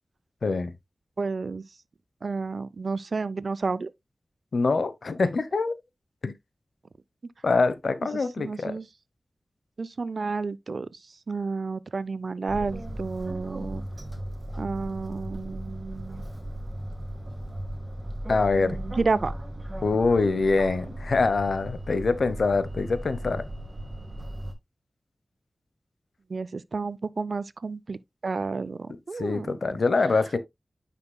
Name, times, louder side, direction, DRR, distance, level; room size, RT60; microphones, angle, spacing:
voice 1, 0.4-0.7 4.5-5.8 6.2-6.3 7.4-8.7 18.3-18.8 19.8-23.4 29.2-30.4, left 3 dB, 80° left, 0.9 m, -24 dB
voice 2, 1.2-1.7 2.2-3.9 8.1-8.9 9.8-10.9 11.3-13.9 14.6-16.2 18.6-19.3 26.3-28.0 28.2-29.7, right 4 dB, 70° right, 0.4 m, -31 dB
sound 1, 12.5-24.5, right 1 dB, 30° right, 1.6 m, -36 dB
9.7 x 5.8 x 2.2 m
wide cardioid pair, 70°, 0 cm